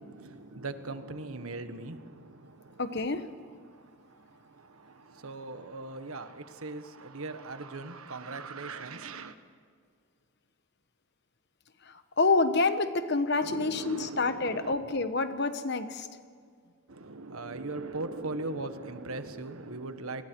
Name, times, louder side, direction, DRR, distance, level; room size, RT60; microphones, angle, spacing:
voice 1, 0.0-2.8 3.6-9.3 13.4-14.8 16.9-20.2, right 3 dB, 80° right, 9 dB, 1.5 m, -40 dB
voice 2, 2.8-3.3 11.8-16.1, left 3 dB, 50° left, 10 dB, 1.2 m, -28 dB
30.0 x 20.5 x 4.7 m, 2.1 s
head